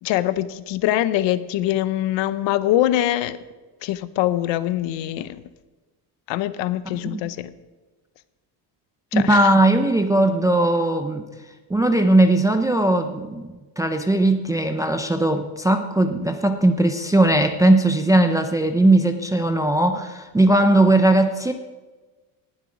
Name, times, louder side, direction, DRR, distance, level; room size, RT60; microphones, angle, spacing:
voice 1, 0.0-3.4 3.8-5.4 6.3-7.5 9.1-9.5 19.9-20.0, left 13 dB, 65° left, 15 dB, 0.8 m, -23 dB
voice 2, 9.1-11.3 11.7-21.5, right 1 dB, 10° right, 6 dB, 0.4 m, -18 dB
19.0 x 7.5 x 5.0 m, 1.2 s
cardioid pair, 145°, 48 cm